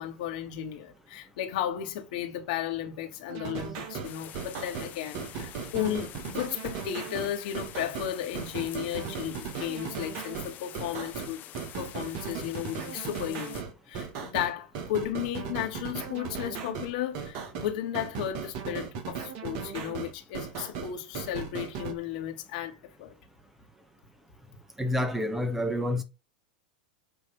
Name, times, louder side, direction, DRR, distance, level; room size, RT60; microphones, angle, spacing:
voice 1, 0.0-11.4 11.8-23.1, left 11 dB, 65° left, 1.9 m, -34 dB
sound 1, 3.3-21.9, right 6 dB, 55° right, 1.6 m, -37 dB
sound 2, 4.0-13.6, left 13 dB, 40° left, 0.8 m, -47 dB
voice 2, 24.8-26.0, left 1 dB, 10° right, 1.1 m, -28 dB
7.7 x 3.2 x 5.5 m
hypercardioid pair, 105°, 5 cm